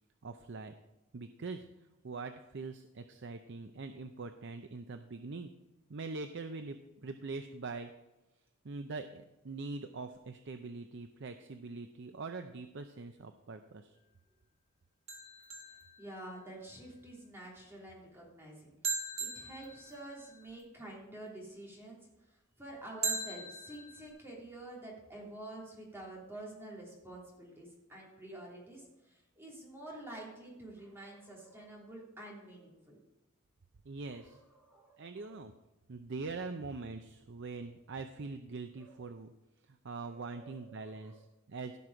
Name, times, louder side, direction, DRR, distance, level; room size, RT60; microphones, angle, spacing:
voice 1, 0.2-0.7 1.1-1.7 2.0-5.5 5.9-6.8 7.0-7.9 8.6-14.0 33.8-34.4 35.0-35.5 35.9-39.3 39.7-41.8, right 3 dB, 60° right, 8 dB, 0.6 m, -43 dB
sound 1, 15.1-16.6 18.8-20.5 23.0-24.1, right 4 dB, 30° right, 1.7 m, -39 dB
voice 2, 16.0-18.7 19.2-22.0 22.6-33.0 34.0-35.4 38.7-39.1 40.0-41.2, right 1 dB, 10° right, -3 dB, 3.3 m, -49 dB
16.0 x 6.0 x 4.9 m, 1.0 s
head